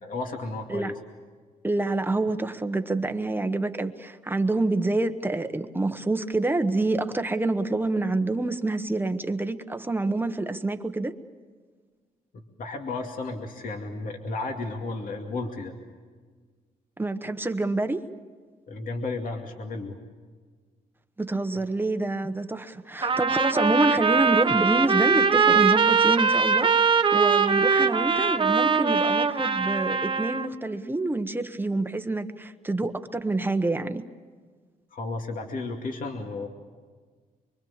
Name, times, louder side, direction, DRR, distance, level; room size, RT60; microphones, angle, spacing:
voice 1, 0.0-0.9 12.3-15.7 18.7-20.0 34.9-36.5, left 3 dB, 60° left, 3 dB, 2.4 m, -33 dB
voice 2, 1.6-11.1 17.0-18.1 21.2-26.7 27.1-34.0, right 2 dB, 15° right, 8 dB, 1.0 m, -27 dB
Trumpet, 23.0-30.5, right 5 dB, 35° right, 1.1 m, -22 dB
25.0 x 24.5 x 7.3 m, 1.5 s
cardioid pair, 120°, 16 cm